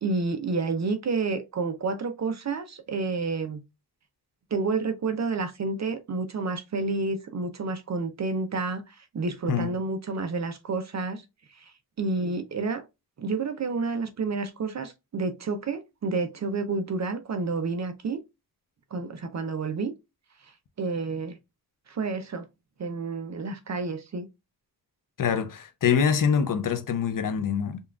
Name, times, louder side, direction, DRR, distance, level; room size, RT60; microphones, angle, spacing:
voice 1, 0.0-3.6 4.5-11.2 11.5-11.7 12.0-12.8 13.2-18.2 18.9-19.9 20.8-21.4 21.9-22.5 22.8-24.3, right 3 dB, 45° right, 0.5 m, -30 dB
voice 2, 25.2-27.8, left 7 dB, 55° left, 0.5 m, -25 dB
5.3 x 2.3 x 2.3 m
wide cardioid pair, 130°, 39 cm